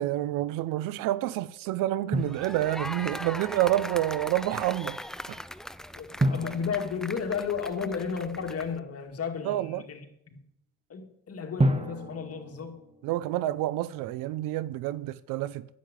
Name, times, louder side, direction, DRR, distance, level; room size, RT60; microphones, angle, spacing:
voice 1, 0.0-5.0 5.3-5.4 9.4-9.8 13.0-15.7, right 14 dB, 90° right, 0.6 m, -28 dB
sound 1, 2.1-8.8, equal, ahead, 0.4 m, -40 dB
Drum, 2.1-3.2 6.2-8.0 11.6-13.6, right 1 dB, 20° right, 1.4 m, -31 dB
voice 2, 5.9-10.4 10.9-12.8, left 6 dB, 50° left, 2.0 m, -33 dB
10.5 x 7.7 x 8.1 m
supercardioid pair, 75°, 32 cm